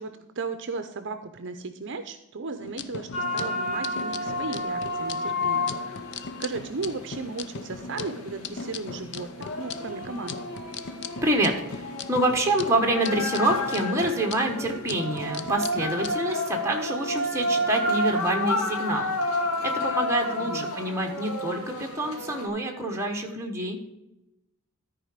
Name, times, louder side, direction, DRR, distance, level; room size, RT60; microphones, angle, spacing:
voice 1, 0.0-10.4 20.3-20.8, right 4 dB, 55° right, 9 dB, 0.7 m, -36 dB
drum orchestra, 2.6-16.2, left 5 dB, 50° left, 0.5 m, -39 dB
sound 1, 3.1-22.5, left 1 dB, 80° left, 2.0 m, -31 dB
voice 2, 11.2-23.8, right 1 dB, 15° right, 1 dB, 1.5 m, -27 dB
13.5 x 4.8 x 5.0 m, 0.92 s
head